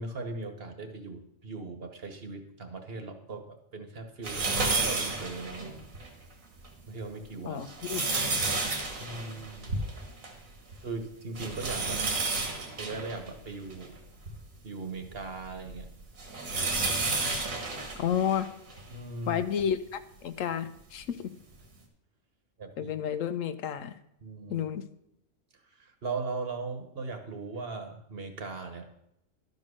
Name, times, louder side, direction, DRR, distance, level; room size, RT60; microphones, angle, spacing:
voice 1, 0.0-5.8 6.9-7.6 9.0-9.7 10.8-12.0 12.8-14.0 14.6-15.9 18.9-19.4 22.6-22.9 24.2-24.7 25.8-28.9, right 3 dB, 50° right, 6 dB, 1.3 m, -39 dB
untitled pulling curtain, 4.2-6.1 6.6-6.7 7.4-10.4 10.7-10.8 11.3-14.4 15.0-18.9 19.6-19.7 21.0-21.1, right 3 dB, 85° right, 2.1 m, -31 dB
voice 2, 7.5-8.4 18.0-18.5 19.3-21.3 22.8-24.0 24.5-24.8, left 8 dB, 75° left, 11 dB, 1.0 m, -31 dB
11.5 x 5.3 x 6.3 m, 0.79 s
omnidirectional pair, 1.4 m